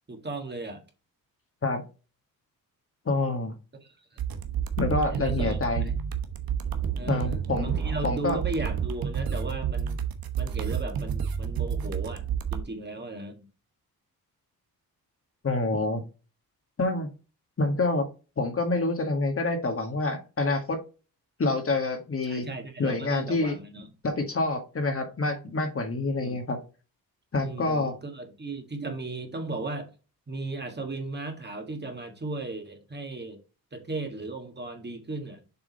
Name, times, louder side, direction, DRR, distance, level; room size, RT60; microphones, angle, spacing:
voice 1, 0.1-0.8 3.8-4.3 5.1-5.9 7.0-10.0 10.4-12.2 12.5-13.4 22.3-23.9 26.2-26.4 27.4-29.9 30.3-33.4 33.7-35.4, right 3 dB, 30° right, 1.8 m, -36 dB
voice 2, 3.0-3.5 4.8-5.9 7.1-7.8 8.0-8.4 15.4-16.0 16.8-17.1 17.6-18.1 18.4-20.8 21.4-22.4 22.8-23.6 24.0-26.6 27.3-27.9, left 2 dB, 35° left, 1.8 m, -27 dB
sound 1, 4.2-12.6, right 7 dB, 70° right, 1.1 m, -30 dB
7.1 x 3.7 x 4.1 m
cardioid pair, 75°, 37 cm